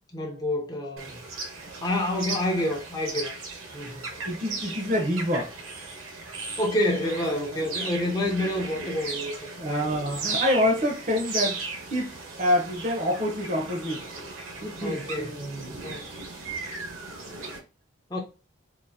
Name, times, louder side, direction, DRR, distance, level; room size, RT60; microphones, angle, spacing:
voice 1, 0.1-1.2 1.8-3.3 3.7-4.1 6.6-9.9 14.8-15.3 15.8-16.1 18.1-18.2, left 1 dB, 20° left, 0.7 m, -28 dB
sound 1, 1.0-17.6, right 3 dB, 80° right, 1.0 m, -36 dB
voice 2, 4.1-5.5 9.6-14.1 14.6-15.8, left 1 dB, 35° right, 0.7 m, -27 dB
4.0 x 2.6 x 2.7 m
head